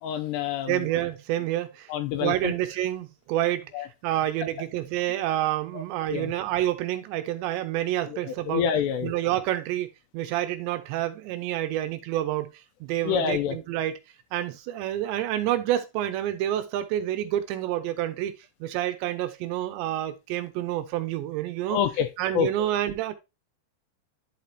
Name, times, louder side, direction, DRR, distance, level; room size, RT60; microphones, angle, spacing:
voice 1, 0.0-0.9 1.9-2.5 3.7-3.9 5.1-5.2 5.7-5.8 6.1-6.3 8.1-9.1 13.0-13.6 21.7-22.1 22.3-22.5, left 8 dB, 80° left, 2.6 m, -27 dB
voice 2, 0.7-1.9 2.2-8.6 9.0-9.9 10.1-12.5 12.8-13.9 14.3-18.3 18.6-21.8 22.2-23.1, right 13 dB, 85° right, 2.9 m, -28 dB
11.5 x 5.0 x 2.8 m
omnidirectional pair, 5.3 m